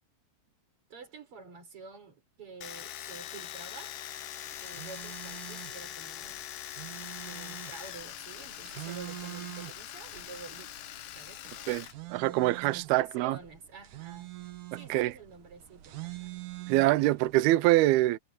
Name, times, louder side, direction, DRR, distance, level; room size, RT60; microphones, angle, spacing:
voice 1, 0.9-3.9 4.6-6.4 7.2-10.7 11.1-11.7 12.1-14.3 14.7-16.3, right 5 dB, 35° right, 4.6 m, -49 dB
Domestic sounds home sounds, 2.6-11.9 12.2-13.0, left 12 dB, 75° left, 3.4 m, -43 dB
sound 1, 4.5-17.4, right 16 dB, 60° right, 2.4 m, -46 dB
voice 2, 12.1-13.4 14.9-15.1 16.7-18.2, right 17 dB, 80° right, 2.3 m, -24 dB
omnidirectional pair, 5.0 m